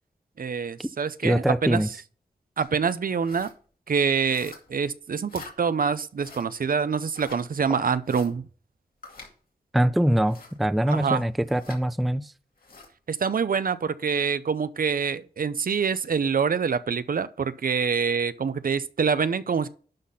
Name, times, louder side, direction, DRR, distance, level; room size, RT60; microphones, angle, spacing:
voice 1, 0.4-1.8 2.6-3.5 3.9-8.4 10.9-11.2 13.1-19.7, right 6 dB, 60° right, 0.6 m, -26 dB
voice 2, 1.2-1.9 9.7-12.3, right 1 dB, ahead, 0.4 m, -23 dB
sound 1, 2.6-2.8 3.2-3.6 4.3-4.8 5.3-5.6 6.2-6.5 7.1-7.4 8.0-8.3 9.0-9.3 10.3-10.6 11.4-11.8 12.6-12.9, left 3 dB, 60° left, 2.5 m, -45 dB
11.5 x 4.2 x 5.5 m
wide cardioid pair, 110°, 17 cm